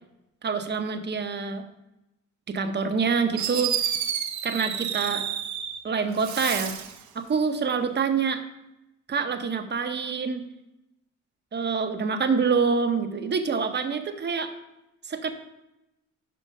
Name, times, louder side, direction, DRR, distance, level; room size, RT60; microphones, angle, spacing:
voice 1, 0.4-1.6 2.5-3.8 4.4-5.3 5.8-6.8 7.1-8.4 9.1-10.4 11.5-14.5 15.0-15.3, right 5 dB, 35° right, 7 dB, 0.8 m, -26 dB
Fireworks, 3.0-3.1 3.4-5.8 6.2-7.0, right 9 dB, 70° right, 0.7 m, -30 dB
6.5 x 4.4 x 5.4 m, 0.93 s
cardioid pair, 90°, 30 cm